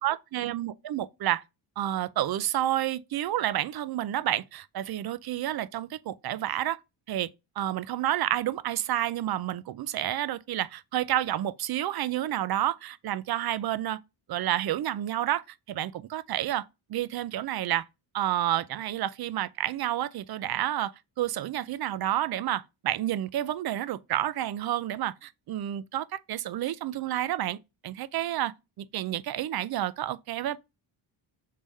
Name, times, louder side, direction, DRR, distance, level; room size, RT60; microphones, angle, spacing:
voice 1, 0.0-1.4 1.8-6.8 7.1-7.3 7.6-14.0 14.3-16.6 16.9-17.8 18.1-20.9 21.2-27.6 27.8-30.6, right 13 dB, 50° right, 0.5 m, -30 dB
3.5 x 3.4 x 4.0 m
cardioid pair, 85°, 49 cm